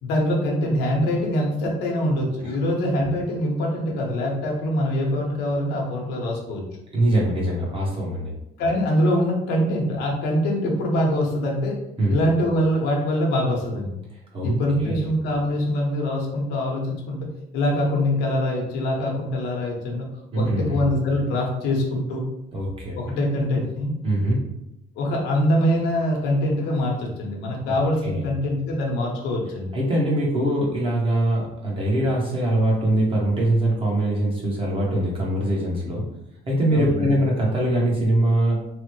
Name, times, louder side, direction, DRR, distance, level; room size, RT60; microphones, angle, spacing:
voice 1, 0.0-6.6 8.6-11.8 12.1-13.9 14.4-17.2 17.5-20.1 20.3-22.2 23.0-23.9 25.0-29.7 36.7-37.1, left 1 dB, 90° left, 0 dB, 0.8 m, -24 dB
voice 2, 6.9-8.3 12.0-12.1 14.3-14.5 14.8-15.0 20.3-20.8 22.5-23.0 24.0-24.4 27.7-27.8 28.0-28.3 29.7-36.0 36.5-38.6, right 1 dB, 30° right, -3 dB, 1.0 m, -22 dB
3.0 x 2.1 x 3.0 m, 0.84 s
cardioid pair, 110°, 17 cm